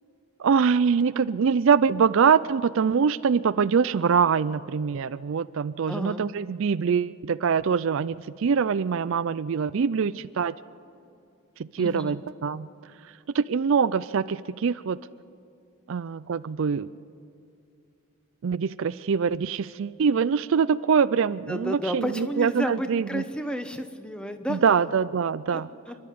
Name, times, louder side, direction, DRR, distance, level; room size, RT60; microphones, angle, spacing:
voice 1, 0.4-10.5 11.6-12.7 13.3-15.0 15.9-16.9 18.4-23.2 24.5-25.7, right 6 dB, 60° right, 16 dB, 0.4 m, -24 dB
voice 2, 5.9-6.3 11.8-12.2 21.5-24.6 25.5-26.0, equal, 5° left, 8 dB, 0.9 m, -32 dB
28.0 x 11.5 x 8.5 m, 2.6 s
head